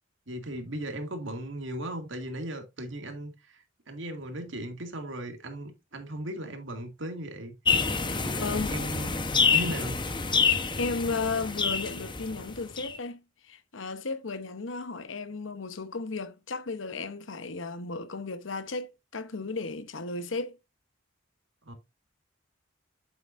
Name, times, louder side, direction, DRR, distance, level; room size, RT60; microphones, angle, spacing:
voice 1, 0.3-7.5 8.1-9.2 9.5-10.0 21.6-21.7, right 1 dB, 65° right, 2.1 m, -37 dB
sound 1, 7.7-13.0, left 5 dB, 25° left, 0.9 m, -27 dB
voice 2, 8.4-8.7 10.8-20.6, left 3 dB, 70° left, 0.9 m, -34 dB
8.9 x 7.5 x 2.6 m
head